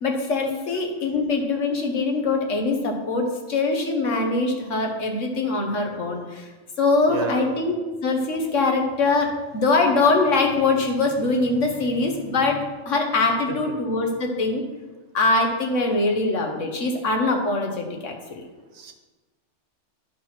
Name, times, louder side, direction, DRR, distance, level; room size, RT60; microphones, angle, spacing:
voice 1, 0.0-6.5 6.8-7.8 8.0-14.6 15.1-18.4, left 3 dB, 85° left, 3 dB, 1.6 m, -23 dB
voice 2, 7.1-7.5 13.5-13.6 18.7-18.9, right 5 dB, 65° right, 4 dB, 1.3 m, -30 dB
10.0 x 4.6 x 5.9 m, 1.2 s
omnidirectional pair, 1.2 m